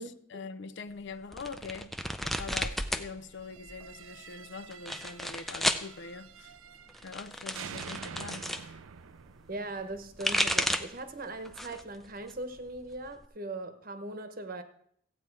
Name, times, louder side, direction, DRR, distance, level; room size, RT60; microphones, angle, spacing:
voice 1, 0.0-1.9 2.2-6.5 7.0-8.8, left 4 dB, 60° left, 0.5 m, -43 dB
sound 1, 1.3-3.1 3.4-4.0 4.7-5.9 6.9-8.6 9.9-11.0 11.4-11.9 12.3-13.2, equal, ahead, 0.4 m, -32 dB
sound 2, 3.4-7.2 7.5-10.6, right 7 dB, 90° right, 0.5 m, -47 dB
voice 2, 9.5-14.6, right 2 dB, 45° right, 1.0 m, -39 dB
15.0 x 8.6 x 4.6 m
head